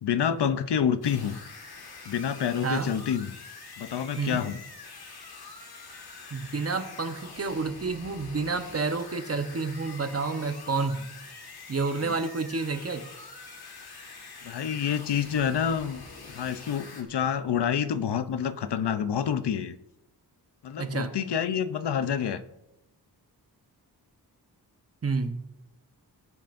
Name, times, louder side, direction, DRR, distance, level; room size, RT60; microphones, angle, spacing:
voice 1, 0.0-1.4 2.1-3.4 3.8-4.6 12.0-12.1 14.4-19.7 20.6-22.4, left 8 dB, 85° left, 12 dB, 0.7 m, -28 dB
sound 1, 1.0-17.0, left 4 dB, 70° left, 1.8 m, -45 dB
voice 2, 6.3-11.1 11.7-13.1 20.8-21.1 25.0-25.4, right 4 dB, 35° right, 8 dB, 0.9 m, -29 dB
19.0 x 8.8 x 2.6 m, 0.91 s
wide cardioid pair, 105°, 40 cm